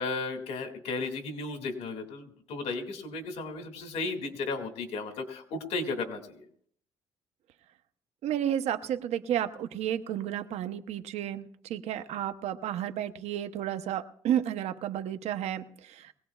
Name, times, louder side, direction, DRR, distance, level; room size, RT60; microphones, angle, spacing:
voice 1, 0.0-6.4, left 3 dB, 75° left, 5 dB, 2.3 m, -34 dB
voice 2, 8.2-16.1, right 10 dB, 75° right, 10 dB, 0.9 m, -32 dB
22.5 x 17.5 x 2.4 m, 0.63 s
cardioid pair, 110°, 11 cm